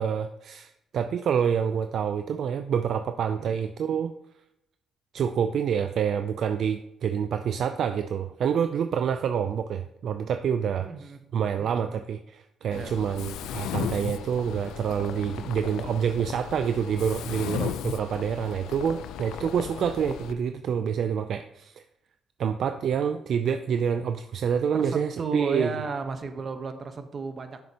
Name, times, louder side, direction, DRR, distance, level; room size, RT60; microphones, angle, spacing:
voice 1, 0.0-4.1 5.1-10.9 11.3-21.8 22.4-25.7, right 7 dB, 65° right, 8 dB, 0.4 m, -27 dB
voice 2, 10.8-11.2 11.6-12.0 12.7-13.0 24.7-27.6, right 4 dB, 45° right, 7 dB, 1.1 m, -34 dB
Mechanisms, 12.7-20.3, left 10 dB, 85° left, 0.4 m, -36 dB
9.4 x 6.9 x 2.9 m, 0.82 s
cardioid pair, 90°, 0 cm